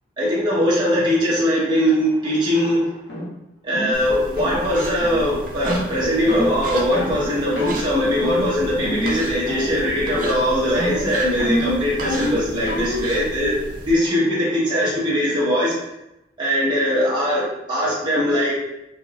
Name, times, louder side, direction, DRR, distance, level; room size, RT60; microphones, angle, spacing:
voice 1, 0.2-2.9 3.6-13.6 13.9-15.7 16.4-18.5, equal, 25° right, -9 dB, 1.0 m, -21 dB
sound 1, 3.1-3.3 3.7-4.0 4.4-4.6 5.0-5.2 5.6-5.9 6.3-6.5 6.9-7.2 7.6-7.8 8.2-8.6 8.8-9.2 9.5-9.9 10.1-10.5 10.8-13.1, equal, 60° left, 1.0 m, -26 dB
sound 2, 3.9-13.9, right 1 dB, 50° right, 0.6 m, -34 dB
3.3 x 3.3 x 2.4 m, 0.91 s
head